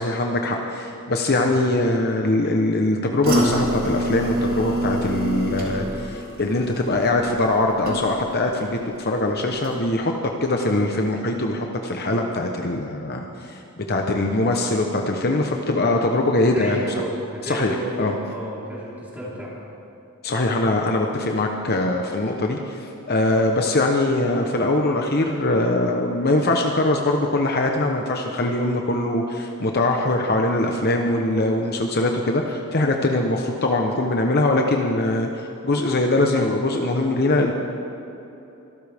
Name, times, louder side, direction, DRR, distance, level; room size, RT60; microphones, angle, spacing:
voice 1, 0.0-10.1 10.4-13.3 13.8-16.8 17.5-18.1 20.2-35.3 35.6-37.5, left 2 dB, 45° left, 2 dB, 1.0 m, -22 dB
sound 1, 3.2-8.5 8.8-9.2 9.6-9.7, equal, 40° right, 3.1 m, -27 dB
voice 2, 16.4-19.5, right 1 dB, 10° right, -7 dB, 4.1 m, -33 dB
24.5 x 13.0 x 3.6 m, 2.9 s
head